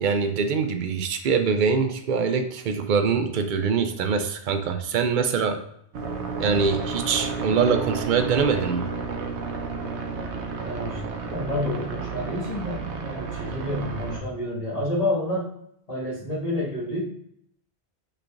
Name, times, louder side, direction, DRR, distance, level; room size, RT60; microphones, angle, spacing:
voice 1, 0.0-5.6 6.4-8.9, right 5 dB, 55° right, 8 dB, 0.6 m, -23 dB
sound 1, 5.9-14.2, right 5 dB, 90° right, 1.0 m, -31 dB
voice 2, 10.6-15.5 15.9-17.0, left 1 dB, 35° left, -6 dB, 1.7 m, -29 dB
6.1 x 3.3 x 2.4 m, 0.71 s
omnidirectional pair, 1.1 m